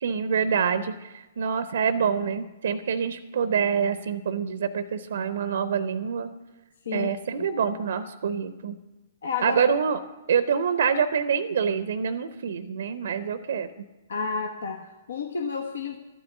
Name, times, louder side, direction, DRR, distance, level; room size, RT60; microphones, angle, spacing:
voice 1, 0.0-6.3 6.9-8.8 9.4-10.0 10.3-13.9, right 6 dB, 60° right, 13 dB, 0.6 m, -26 dB
voice 2, 6.9-7.5 9.2-9.6 14.1-16.0, left 5 dB, 70° left, 4 dB, 0.9 m, -31 dB
12.5 x 9.4 x 7.2 m, 1.1 s
figure-of-eight pair, 115°, 0 cm